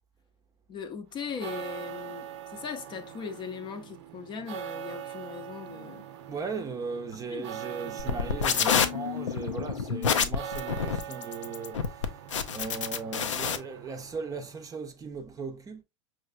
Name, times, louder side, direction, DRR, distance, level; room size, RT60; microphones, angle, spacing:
voice 1, 0.7-6.0 7.3-7.5, left 6 dB, 30° left, 0.6 m, -39 dB
sound 1, 1.2-14.7, right 10 dB, 65° right, 0.7 m, -43 dB
voice 2, 6.3-15.8, right 4 dB, 20° right, 0.6 m, -38 dB
sound 2, 8.0-13.6, left 6 dB, 85° left, 0.5 m, -28 dB
5.3 x 3.1 x 2.4 m
hypercardioid pair, 95°, 15 cm